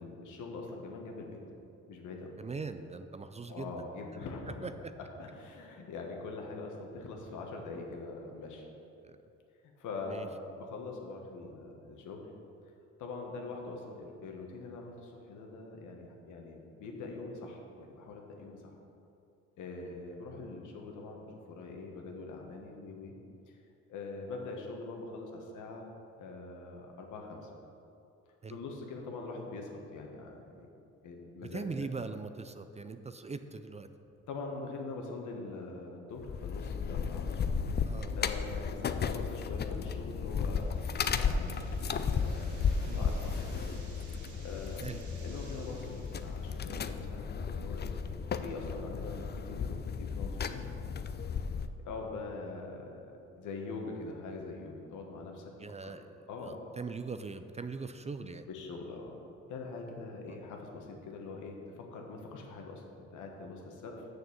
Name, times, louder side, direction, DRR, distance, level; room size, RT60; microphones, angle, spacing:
voice 1, 0.0-1.4 1.9-2.4 3.5-4.6 5.2-8.7 9.8-12.3 13.0-18.7 19.6-23.1 23.5-23.6 23.9-25.9 26.2-27.5 28.5-30.7 31.0-31.9 34.3-37.4 38.2-41.6 42.1-43.7 44.0-44.1 44.4-44.9 45.2-48.0 48.3-50.6 51.8-55.5 55.8-55.9 56.3-56.5 58.5-59.2 59.5-64.1, left 3 dB, 80° left, 1 dB, 1.5 m, -43 dB
voice 2, 2.4-3.7 4.5-4.9 9.0-9.2 10.1-10.3 19.8-20.0 28.4-28.6 31.4-33.9 37.8-38.1 42.9-43.3 44.8-45.2 55.6-56.1 56.4-58.5 60.3-60.4, right 4 dB, 20° right, 10 dB, 0.4 m, -41 dB
sound 1, 36.2-51.7, left 6 dB, 35° left, 0.5 m, -34 dB
sound 2, 40.1-47.1, right 4 dB, 70° right, 1.6 m, -58 dB
6.7 x 6.6 x 7.1 m, 2.7 s
cardioid pair, 90°, 30 cm